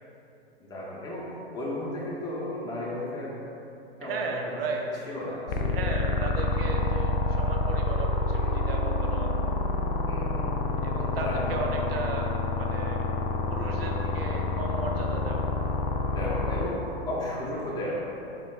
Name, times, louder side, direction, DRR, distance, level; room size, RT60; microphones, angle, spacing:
voice 1, 0.6-3.4 4.0-4.6 5.1-5.8 6.6-7.0 10.1-10.8 11.2-11.8 16.0-18.0, left 1 dB, 15° left, -5 dB, 0.7 m, -34 dB
voice 2, 4.0-4.8 5.7-9.3 10.8-13.1 13.5-15.5, right 3 dB, 70° right, 1 dB, 0.6 m, -35 dB
sound 1, 5.5-16.7, left 2 dB, 60° left, 0.4 m, -27 dB
4.2 x 3.3 x 2.2 m, 2.9 s
hypercardioid pair, 110°, 31 cm